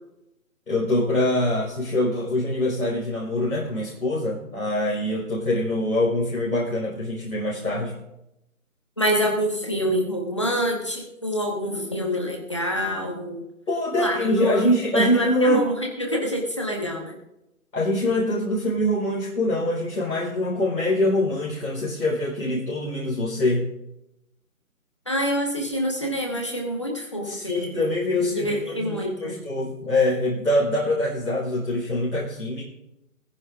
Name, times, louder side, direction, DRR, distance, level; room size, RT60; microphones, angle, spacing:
voice 1, 0.7-8.0 13.7-15.6 17.7-23.7 27.2-28.9 29.2-32.6, left 1 dB, 85° left, -4 dB, 5.0 m, -24 dB
voice 2, 9.0-13.4 14.0-14.7 14.9-17.2 25.0-27.8 28.1-29.4, equal, 20° left, 1 dB, 1.5 m, -26 dB
18.5 x 15.5 x 2.6 m, 0.89 s
figure-of-eight pair, 180°, 44 cm